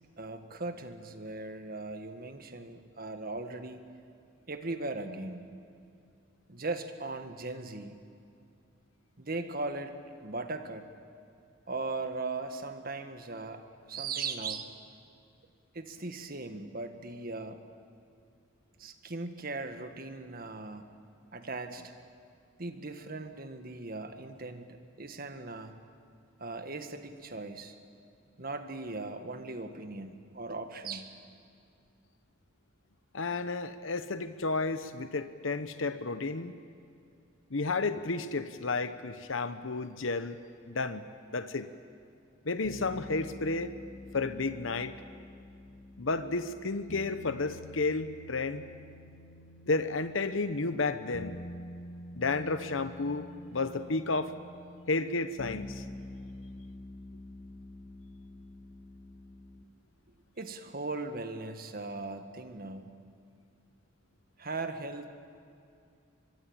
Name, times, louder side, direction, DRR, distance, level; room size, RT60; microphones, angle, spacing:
voice 1, 0.2-3.8 4.5-5.5 6.5-8.0 9.2-10.0 10.2-10.9 11.7-14.7 15.7-17.6 18.8-20.9 21.3-21.9 22.6-25.7 26.4-27.7 28.4-31.1 60.4-62.9 64.4-65.1, right 3 dB, 50° right, 8 dB, 1.7 m, -38 dB
voice 2, 33.1-36.5 37.5-40.4 40.7-41.0 41.3-41.7 42.4-43.7 44.1-44.9 46.0-48.8 49.7-51.4 52.1-54.3 54.9-55.8, left 3 dB, 80° left, 11 dB, 1.0 m, -32 dB
sound 1, 42.6-59.6, left 1 dB, 55° left, 1.4 m, -47 dB
24.0 x 23.0 x 8.9 m, 2.5 s
head